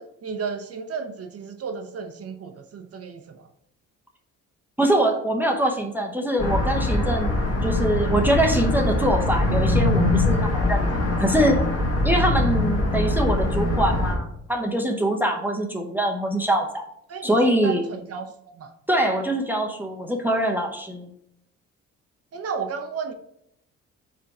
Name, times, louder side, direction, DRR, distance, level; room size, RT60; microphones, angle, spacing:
voice 1, 0.0-3.5 17.1-18.7 22.3-23.1, right 5 dB, 50° right, 6 dB, 0.7 m, -33 dB
voice 2, 4.8-7.3 7.6-10.8 11.2-11.6 12.0-16.8 17.2-17.9 18.9-21.1, right 1 dB, 5° right, 2 dB, 0.8 m, -23 dB
sound 1, 6.4-14.2, left 2 dB, 50° left, 1.8 m, -22 dB
4.8 x 4.5 x 4.8 m, 0.75 s
cardioid pair, 90°, 30 cm